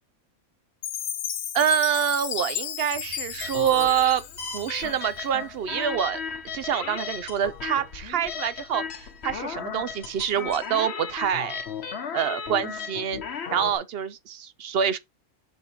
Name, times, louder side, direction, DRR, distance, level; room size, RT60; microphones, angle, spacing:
Chime, 0.8-5.1, left 10 dB, 90° left, 1.2 m, -34 dB
voice 1, 1.5-4.2 4.5-6.2 6.5-11.6 12.1-13.2 13.5-15.0, right 9 dB, 60° right, 0.6 m, -26 dB
sound 1, 2.9-9.8, left 1 dB, 85° right, 2.0 m, -53 dB
sound 2, 3.4-13.8, left 6 dB, 50° left, 1.1 m, -35 dB
5.5 x 4.1 x 4.2 m
omnidirectional pair, 1.5 m